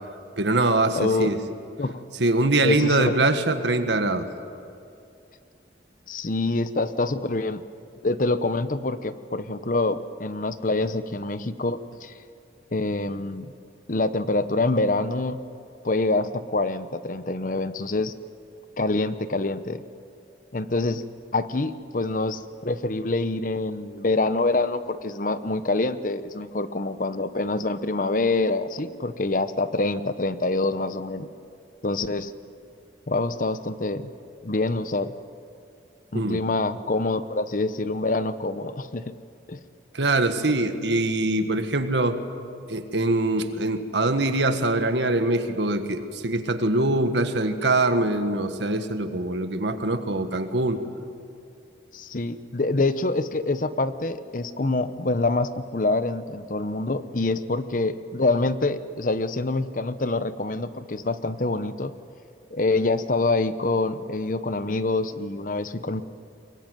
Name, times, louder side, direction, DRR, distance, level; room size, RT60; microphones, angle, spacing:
voice 1, 0.4-1.4 2.2-4.3 36.1-36.4 39.9-42.2 42.7-50.8, right 2 dB, 75° right, 8 dB, 1.6 m, -23 dB
voice 2, 0.9-1.3 1.8-2.0 2.6-3.2 6.1-7.6 8.0-12.1 12.7-13.5 13.9-15.4 15.8-18.1 18.8-19.8 20.5-21.0 21.3-31.3 31.8-32.3 33.1-34.1 34.4-35.1 36.1-39.0 39.5-39.6 51.9-61.9 62.5-66.0, left 2 dB, 45° left, 12 dB, 0.9 m, -26 dB
22.5 x 22.5 x 9.3 m, 2.5 s
head